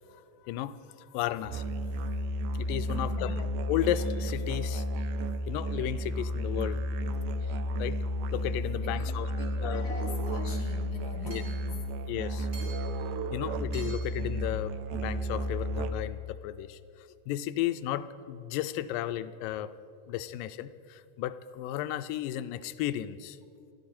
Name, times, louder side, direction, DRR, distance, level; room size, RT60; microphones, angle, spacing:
voice 1, 0.4-1.8 2.6-4.9 5.5-6.8 7.8-8.0 8.3-9.3 9.6-9.8 11.3-11.4 12.1-12.5 13.3-16.8 17.3-19.7 20.1-23.4, left 12 dB, 90° left, 13 dB, 2.3 m, -34 dB
Musical instrument, 1.4-16.2, equal, 75° right, 2.1 m, -32 dB
voice 2, 2.9-3.4 8.8-11.8, left 4 dB, 40° left, 2 dB, 2.0 m, -43 dB
Hammer / Chink clink, 10.4-10.5 11.3-11.7 12.5-13.0 13.7-14.2, right 4 dB, 15° right, 3.2 m, -48 dB
28.5 x 11.5 x 4.3 m, 2.6 s
omnidirectional pair, 3.8 m